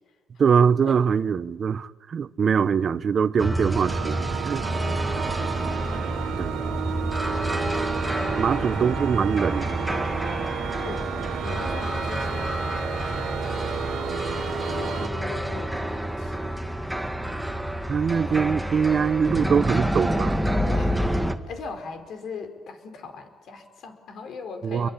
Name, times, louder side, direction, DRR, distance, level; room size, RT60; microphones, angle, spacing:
voice 1, 0.4-4.2 4.4-4.7 6.4-6.5 8.4-9.8 17.9-20.4 24.6-24.9, right 6 dB, 50° right, 0.9 m, -23 dB
sound 1, 3.4-21.3, right 1 dB, 5° right, 1.9 m, -28 dB
sound 2, 3.8-15.1, right 11 dB, 90° right, 1.3 m, -33 dB
voice 2, 4.8-5.7 7.0-7.4 8.0-9.1 10.8-14.0 14.7-16.4 20.6-21.0 21.5-24.9, left 4 dB, 70° left, 4.8 m, -40 dB
29.0 x 23.0 x 8.8 m
cardioid pair, 90°, 0 cm